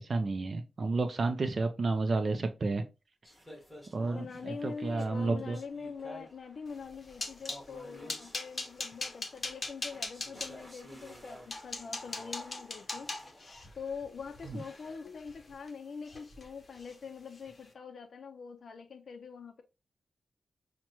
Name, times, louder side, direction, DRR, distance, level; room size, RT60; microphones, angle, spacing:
voice 1, 0.0-2.9 3.9-5.6, right 3 dB, 45° right, 0.4 m, -31 dB
sound 1, 3.2-15.0, equal, ahead, 1.5 m, -53 dB
voice 2, 4.1-13.3 13.7-19.6, left 5 dB, 65° left, 0.4 m, -44 dB
sound 2, 6.8-7.6 8.1-10.5 11.1-11.2 11.5-15.7 16.1-16.5 16.7-17.0 17.4-17.5, left 3 dB, 35° left, 0.7 m, -40 dB
5.8 x 2.1 x 2.9 m
wide cardioid pair, 130°, 0 cm